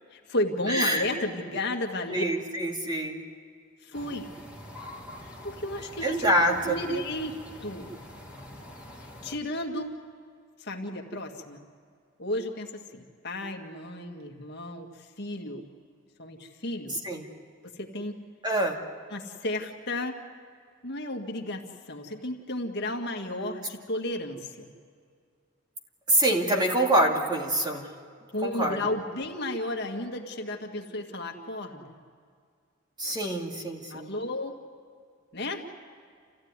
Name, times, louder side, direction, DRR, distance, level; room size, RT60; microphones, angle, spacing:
voice 1, 0.1-2.2 3.8-4.3 5.2-7.3 7.6-7.9 9.2-9.9 10.6-11.6 12.2-15.6 16.2-17.0 17.8-18.2 19.1-20.2 20.8-24.7 28.3-32.0 33.9-34.6 35.3-35.7, left 1 dB, 55° left, 2 dB, 1.9 m, -33 dB
voice 2, 0.7-1.1 2.1-3.2 6.0-6.8 17.0-17.3 18.4-18.8 26.1-27.9 28.4-28.8 33.0-34.1, right 1 dB, 20° right, 1 dB, 2.4 m, -25 dB
sound 1, 3.9-9.4, left 1 dB, 5° right, 2.5 m, -45 dB
28.0 x 15.5 x 9.6 m, 2.2 s
head